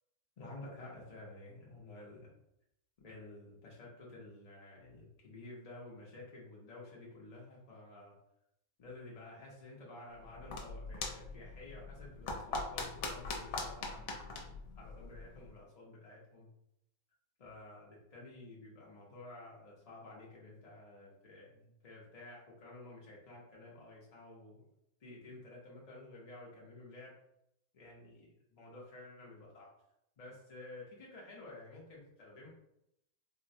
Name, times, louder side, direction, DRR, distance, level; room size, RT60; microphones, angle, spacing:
voice 1, 0.4-2.3 3.0-8.2 8.8-16.5 17.4-24.6 25.0-27.1 27.7-29.7 30.2-32.5, left 2 dB, 50° left, -4 dB, 0.4 m, -52 dB
sound 1, 10.1-15.5, left 3 dB, 75° left, 1.0 m, -42 dB
3.9 x 2.0 x 2.6 m, 0.80 s
omnidirectional pair, 1.5 m